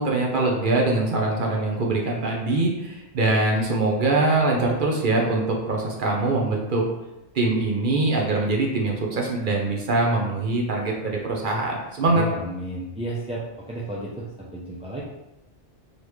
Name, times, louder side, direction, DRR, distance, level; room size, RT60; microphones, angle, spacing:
voice 1, 0.0-6.8 7.3-12.2, right 2 dB, 50° right, -1 dB, 0.8 m, -23 dB
voice 2, 12.0-13.4 13.7-15.0, right 1 dB, 10° right, -6 dB, 0.4 m, -32 dB
4.0 x 3.3 x 3.1 m, 0.92 s
omnidirectional pair, 1.2 m